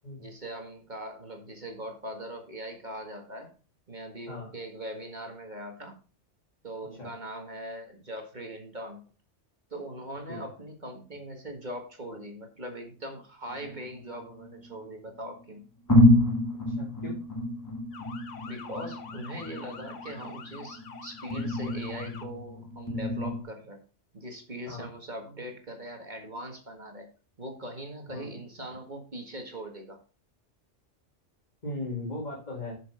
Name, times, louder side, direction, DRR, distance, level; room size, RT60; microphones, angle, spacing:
voice 1, 0.2-3.5 3.9-6.0 6.6-9.0 9.7-15.7 18.5-23.8 24.1-27.1 27.4-30.0, right 1 dB, 40° right, 3 dB, 1.9 m, -41 dB
sound 1, 13.5-14.8 15.4-15.5 15.9-23.4, left 1 dB, 15° left, 1.2 m, -28 dB
voice 2, 16.7-17.2 24.7-24.9 28.1-28.3 31.6-32.8, left 2 dB, 35° left, -2 dB, 2.3 m, -38 dB
Motor vehicle (road) / Siren, 17.9-22.3, left 5 dB, 75° left, 1.4 m, -45 dB
7.6 x 6.7 x 4.9 m, 0.37 s
omnidirectional pair, 1.2 m